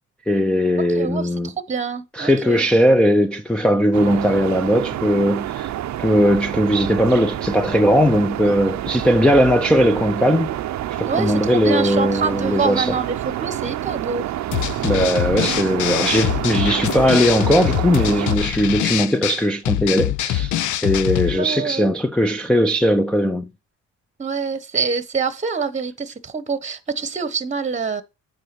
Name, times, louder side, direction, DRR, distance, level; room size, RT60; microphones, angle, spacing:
voice 1, 0.3-1.5 2.1-5.7 6.0-10.6 10.9-13.0 14.8-20.5 20.8-23.5, equal, 5° left, 0.5 m, -18 dB
voice 2, 1.0-2.6 11.1-14.2 16.6-16.9 21.4-21.9 24.2-28.0, right 5 dB, 25° right, 1.0 m, -26 dB
sound 1, 3.9-18.4, right 13 dB, 65° right, 0.6 m, -28 dB
sound 2, 14.5-21.4, left 13 dB, 75° left, 0.6 m, -24 dB
9.1 x 3.4 x 6.8 m
cardioid pair, 90°, 30 cm